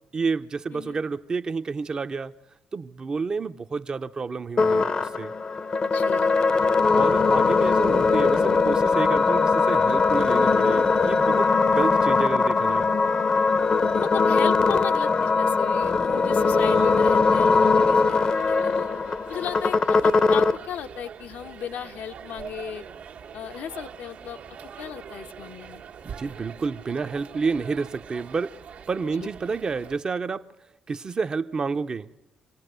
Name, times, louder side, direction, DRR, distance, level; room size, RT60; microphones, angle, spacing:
voice 1, 0.1-2.3 2.7-5.3 6.9-12.9 26.0-28.5 28.9-30.5 30.9-32.1, right 4 dB, 30° right, 0.7 m, -29 dB
sound 1, 4.6-20.6, left 4 dB, 30° left, 0.7 m, -21 dB
voice 2, 5.8-6.3 11.8-12.1 13.9-18.9 19.3-22.8 23.3-24.4 24.8-25.8 29.2-29.3, left 9 dB, 85° left, 1.0 m, -36 dB
sound 2, 16.3-30.0, right 7 dB, 75° right, 1.6 m, -43 dB
27.0 x 18.0 x 6.7 m
cardioid pair, 145°, 3 cm